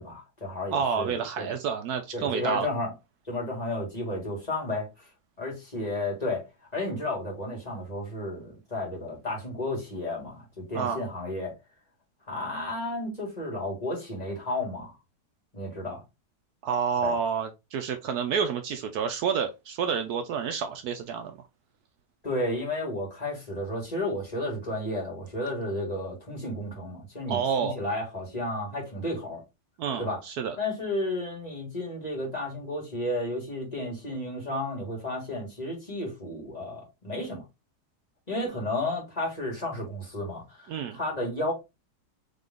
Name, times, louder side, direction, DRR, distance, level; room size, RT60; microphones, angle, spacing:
voice 1, 0.0-1.5 2.1-2.9 3.3-5.1 5.4-6.4 6.7-11.5 12.3-15.0 15.5-16.0 17.0-17.2 22.2-29.4 30.0-30.2 30.6-37.4 38.3-41.5, left 1 dB, 25° left, 1.7 m, -32 dB
voice 2, 0.7-2.7 10.7-11.0 16.6-21.3 27.3-27.8 29.8-30.6 40.7-41.0, right 7 dB, 70° right, 1.0 m, -29 dB
3.8 x 3.2 x 3.6 m
omnidirectional pair, 1.8 m